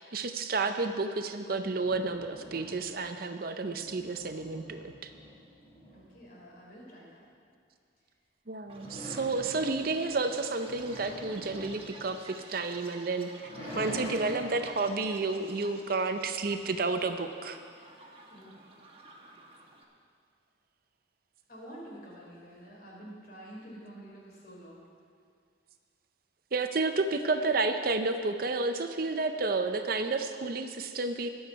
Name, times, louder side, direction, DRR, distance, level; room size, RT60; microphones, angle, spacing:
voice 1, 0.0-5.1 8.5-17.6 26.5-31.3, right 3 dB, 50° right, 7 dB, 0.6 m, -31 dB
sound 1, 1.6-3.2 3.6-6.3 8.7-12.8 13.2-16.3, equal, 30° left, 3.4 m, -45 dB
voice 2, 5.9-7.2 18.3-18.6 21.5-24.9, right 1 dB, 50° left, -4 dB, 3.6 m, -48 dB
Chirp tweet, 8.7-19.8, right 2 dB, 30° right, 1.2 m, -52 dB
21.5 x 7.2 x 4.7 m, 2.2 s
head